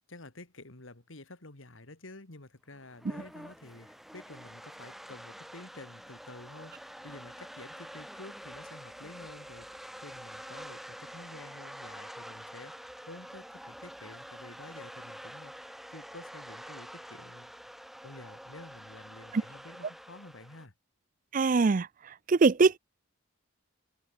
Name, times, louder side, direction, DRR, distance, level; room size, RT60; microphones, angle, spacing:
voice 1, 0.1-17.5 18.0-20.7, left 2 dB, 70° left, 2.3 m, -50 dB
sound 1, 2.7-20.7, equal, ahead, 1.0 m, -47 dB
voice 2, 21.3-22.8, right 4 dB, 40° right, 0.4 m, -23 dB
head